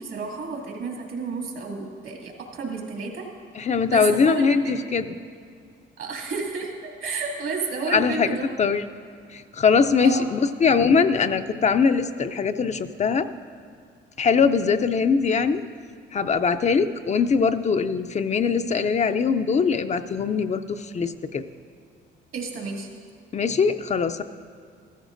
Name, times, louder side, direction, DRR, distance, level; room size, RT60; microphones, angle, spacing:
voice 1, 0.0-3.3 3.6-4.8 6.0-8.5 10.0-10.3 22.3-22.9, right 4 dB, 70° right, 0 dB, 2.3 m, -31 dB
voice 2, 3.6-5.0 7.9-8.8 9.3-13.3 14.2-15.6 16.1-21.4 23.3-24.2, left 5 dB, 35° left, 9 dB, 0.4 m, -22 dB
14.5 x 14.0 x 2.6 m, 2.2 s
cardioid pair, 90°, 20 cm